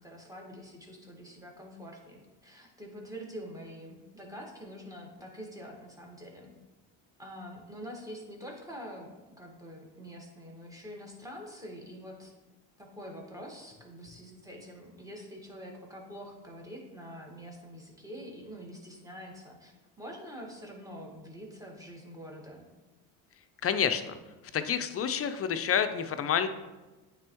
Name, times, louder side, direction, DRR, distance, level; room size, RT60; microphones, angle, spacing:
voice 1, 0.0-6.5 7.2-12.3 12.8-22.6, equal, 10° right, 0 dB, 1.6 m, -45 dB
voice 2, 23.6-24.2 24.5-26.5, left 8 dB, 35° left, 10 dB, 0.5 m, -28 dB
9.0 x 3.4 x 3.1 m, 1.2 s
supercardioid pair, 70°, 40 cm